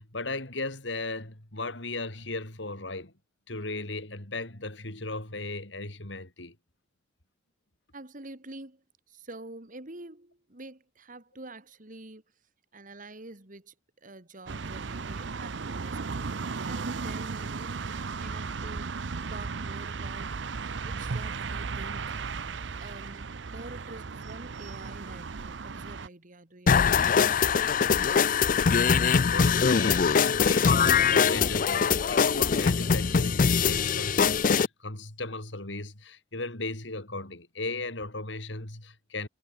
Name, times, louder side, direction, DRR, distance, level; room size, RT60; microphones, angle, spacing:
voice 1, 0.0-3.1 3.5-6.6 28.9-29.0 29.3-39.3, left 2 dB, 70° left, 4.4 m, -36 dB
voice 2, 7.9-12.2 12.7-13.7 14.0-17.8 18.2-19.0 19.3-20.3 20.8-22.1 22.8-27.4, right 2 dB, 45° right, 2.6 m, -47 dB
sound 1, 14.5-26.1, right 4 dB, 65° right, 0.7 m, -35 dB
sound 2, 26.7-34.7, left 6 dB, 45° left, 0.5 m, -22 dB
head